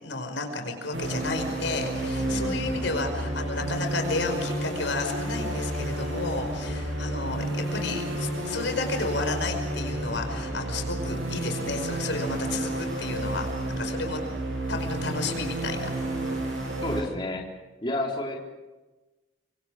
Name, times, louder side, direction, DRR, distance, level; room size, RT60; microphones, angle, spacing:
voice 1, 0.0-13.5 13.8-14.2 14.7-15.9, left 3 dB, 80° left, 5 dB, 5.2 m, -32 dB
sound 1, 0.9-17.0, right 1 dB, 90° right, 7.7 m, -31 dB
voice 2, 2.2-2.7 16.8-17.4 17.8-18.4, left 1 dB, 25° left, -1 dB, 3.8 m, -30 dB
25.5 x 25.5 x 5.0 m, 1.2 s
head